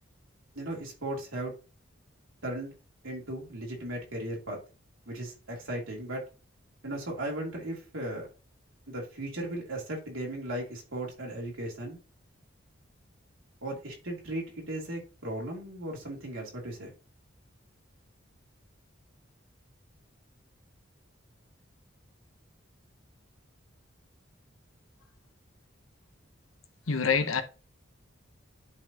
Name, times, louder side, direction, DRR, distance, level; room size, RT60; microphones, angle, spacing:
voice 1, 0.5-1.5 2.4-2.7 3.0-4.6 5.1-6.2 6.8-8.3 8.9-12.0 13.6-16.9, right 1 dB, 85° right, 2.9 m, -36 dB
voice 2, 26.9-27.4, left 5 dB, 90° left, 1.0 m, -25 dB
10.5 x 4.2 x 2.9 m
head